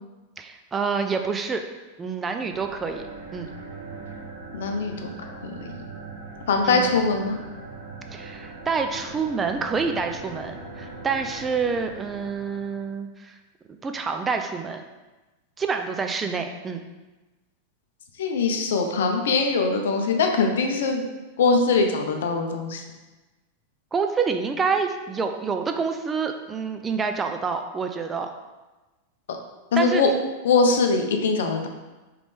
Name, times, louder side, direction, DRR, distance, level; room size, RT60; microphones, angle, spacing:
voice 1, 0.4-1.6 2.0-3.0 3.3-3.5 6.6-6.9 8.1-13.4 13.7-14.8 15.6-16.8 23.9-28.3 29.8-30.0, right 5 dB, 20° right, 6 dB, 0.3 m, -27 dB
sound 1, 2.4-12.9, right 3 dB, 70° right, 1.0 m, -40 dB
voice 2, 4.5-5.5 6.5-7.4 18.2-21.1 21.4-22.8 29.7-30.1 30.4-31.7, left 4 dB, 60° left, 4 dB, 0.5 m, -22 dB
3.7 x 3.2 x 3.4 m, 1.1 s
figure-of-eight pair, 90°, 0 cm